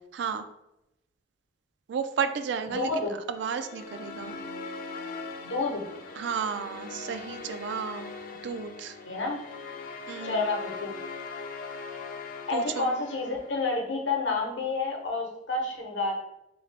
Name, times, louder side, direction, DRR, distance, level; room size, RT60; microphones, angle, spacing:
voice 1, 0.1-0.4 1.9-4.4 6.2-8.1 8.4-8.9 10.1-10.5 12.5-12.9, right 6 dB, 70° right, 9 dB, 0.3 m, -33 dB
voice 2, 2.7-3.1 5.4-5.8 9.0-9.4 10.2-10.9 12.5-16.1, left 3 dB, 80° left, 1 dB, 0.8 m, -29 dB
sound 1, 3.4-13.8, left 4 dB, 50° left, 0.4 m, -41 dB
3.7 x 2.6 x 3.3 m, 0.89 s
head